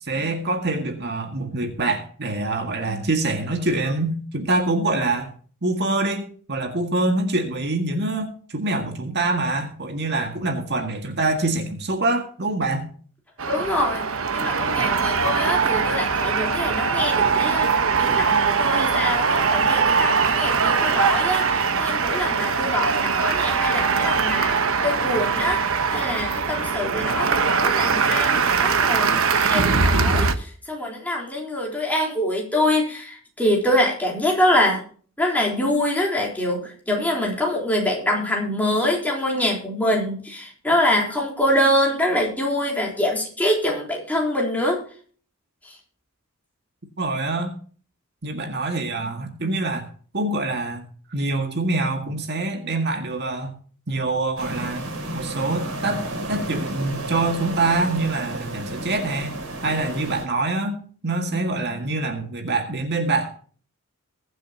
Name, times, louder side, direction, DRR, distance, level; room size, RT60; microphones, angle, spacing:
voice 1, 0.0-5.3 5.6-12.9 47.0-47.5 48.2-49.9 50.1-50.8 51.1-53.5 53.9-54.9 55.1-63.3, right 2 dB, 50° right, 4 dB, 1.9 m, -25 dB
sound 1, 13.4-30.3, right 5 dB, 65° right, 1.1 m, -21 dB
voice 2, 13.5-14.1 14.3-24.5 24.8-25.6 25.9-34.8 35.2-44.8 45.6-45.7, left 1 dB, 5° left, -2 dB, 3.9 m, -24 dB
sound 2, 54.4-60.3, right 1 dB, 80° right, 4.4 m, -32 dB
21.5 x 7.8 x 2.9 m, 0.43 s
head